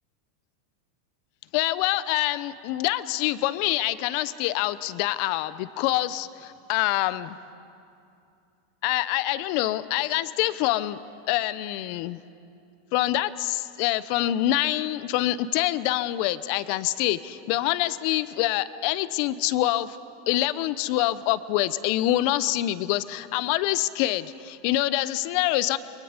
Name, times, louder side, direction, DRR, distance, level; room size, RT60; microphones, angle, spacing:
voice 1, 1.5-7.4 8.8-11.0 11.3-12.2 12.9-20.0 20.3-25.8, left 15 dB, 60° left, 15 dB, 0.8 m, -25 dB
29.5 x 21.5 x 5.2 m, 2.6 s
hypercardioid pair, 110°, 0 cm